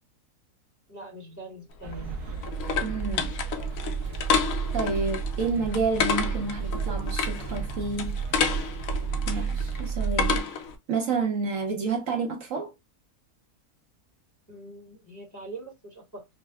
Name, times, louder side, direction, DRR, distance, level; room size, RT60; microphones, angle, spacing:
voice 1, 0.9-2.2 14.5-16.3, right 1 dB, 15° left, 1.1 m, -43 dB
sound 1, 1.8-10.8, left 6 dB, 65° left, 1.0 m, -30 dB
sound 2, 1.8-10.4, right 6 dB, 85° right, 1.5 m, -32 dB
voice 2, 2.8-3.3 4.7-8.2 9.3-9.5 9.8-10.5 10.9-12.7, right 4 dB, 65° right, 1.1 m, -29 dB
5.4 x 2.2 x 2.2 m
omnidirectional pair, 1.6 m